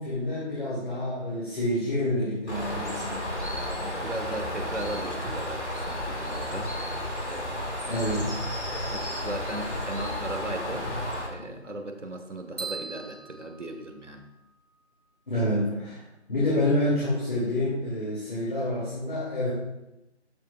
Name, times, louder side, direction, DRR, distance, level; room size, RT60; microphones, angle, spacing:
voice 1, 0.0-3.4 7.9-8.3 9.6-9.7 9.9-10.3 10.6-10.7 11.3-11.5 15.3-16.0 16.3-19.5, left 1 dB, 45° left, -9 dB, 2.6 m, -28 dB
Bird, 2.5-11.3, left 1 dB, 75° left, 2.0 m, -32 dB
voice 2, 3.8-6.7 7.3-7.8 8.9-10.9 11.3-14.3, right 1 dB, 85° right, 5 dB, 1.2 m, -37 dB
sound 1, 12.6-14.5, right 4 dB, 55° right, 1.4 m, -40 dB
13.0 x 5.1 x 2.4 m, 0.94 s
figure-of-eight pair, 165°, 35 cm